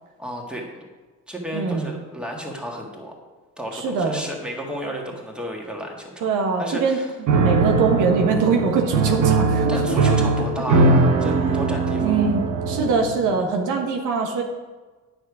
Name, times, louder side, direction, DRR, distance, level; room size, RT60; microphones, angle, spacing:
voice 1, 0.2-0.9 1.3-3.1 3.6-6.3 6.6-7.1 9.7-12.1, equal, 5° right, 0 dB, 1.9 m, -32 dB
voice 2, 1.5-1.9 3.7-4.3 6.2-7.0 7.4-10.1 12.0-14.4, right 4 dB, 85° right, 3 dB, 1.3 m, -23 dB
Piano, 7.3-13.2, right 3 dB, 65° right, 1.1 m, -20 dB
9.0 x 6.7 x 4.9 m, 1.3 s
cardioid pair, 90°, 30 cm